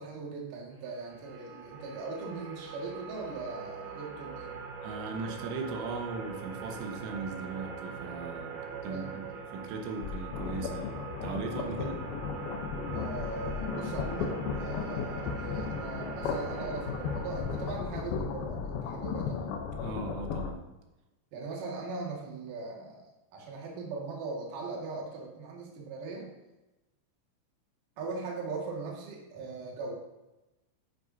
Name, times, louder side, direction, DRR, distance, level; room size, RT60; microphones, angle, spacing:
voice 1, 0.0-4.6 8.9-9.2 11.7-11.8 12.9-19.4 21.3-26.3 28.0-30.0, right 3 dB, 55° right, -2 dB, 3.0 m, -40 dB
sound 1, 0.9-17.7, right 5 dB, 70° right, 2.5 m, -42 dB
voice 2, 4.8-12.0 19.8-20.6, right 4 dB, 90° right, 3 dB, 3.7 m, -38 dB
sound 2, 10.0-20.5, left 6 dB, 85° left, 2.1 m, -35 dB
11.0 x 9.4 x 2.8 m, 1.0 s
omnidirectional pair, 5.5 m